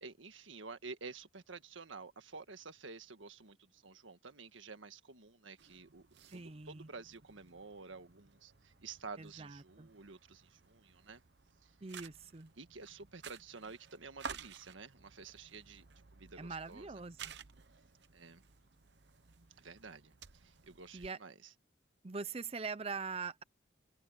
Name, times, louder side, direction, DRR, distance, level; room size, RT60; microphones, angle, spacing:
voice 1, 0.0-6.1 6.3-11.2 11.6-11.8 12.6-15.9 16.1-17.0 18.1-18.4 19.6-21.5, right 4 dB, 85° right, 1.6 m, -51 dB
sound 1, 5.6-21.1, right 6 dB, 60° right, 0.9 m, -54 dB
voice 2, 6.3-6.9 9.2-9.9 11.8-12.5 16.4-17.2 20.9-21.2 22.0-23.4, right 4 dB, 30° right, 0.6 m, -43 dB
head